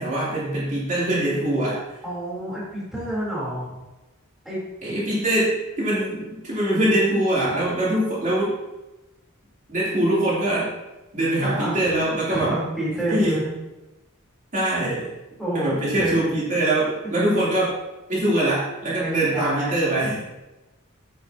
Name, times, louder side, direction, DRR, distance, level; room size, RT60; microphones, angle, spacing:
voice 1, 0.0-2.0 4.8-8.5 9.7-10.7 11.1-12.6 13.1-13.3 14.5-15.1 15.5-17.8 18.1-20.2, right 1 dB, 35° right, -8 dB, 3.2 m, -23 dB
voice 2, 2.0-3.7 4.5-4.7 11.4-13.5 15.4-16.4 17.0-17.2 19.0-19.7, right 1 dB, ahead, -8 dB, 3.5 m, -29 dB
10.0 x 9.0 x 2.9 m, 1.0 s
head